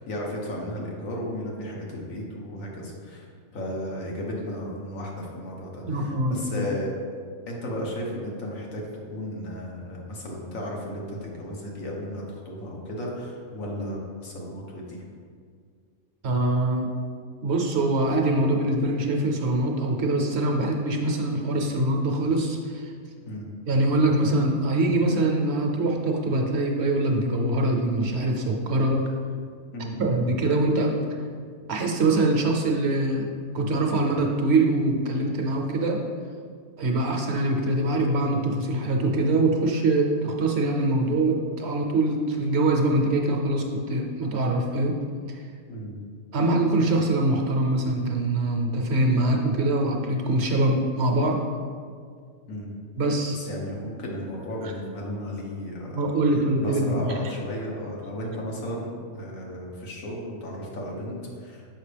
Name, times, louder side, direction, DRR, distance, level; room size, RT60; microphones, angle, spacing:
voice 1, 0.0-3.2 3.5-6.9 7.5-8.8 9.1-15.0 23.2-23.5 29.7-30.4 45.7-46.0 52.5-52.7 53.3-56.2 56.6-61.7, equal, 85° left, -2 dB, 1.5 m, -34 dB
voice 2, 5.9-6.6 16.2-16.9 17.4-22.9 23.7-29.0 30.0-30.9 31.7-33.3 33.5-36.0 36.8-44.9 45.3-45.4 46.3-51.4 53.0-53.4 55.9-57.1, right 2 dB, 60° right, 1 dB, 0.9 m, -23 dB
6.4 x 5.2 x 3.3 m, 2.1 s
omnidirectional pair, 1.4 m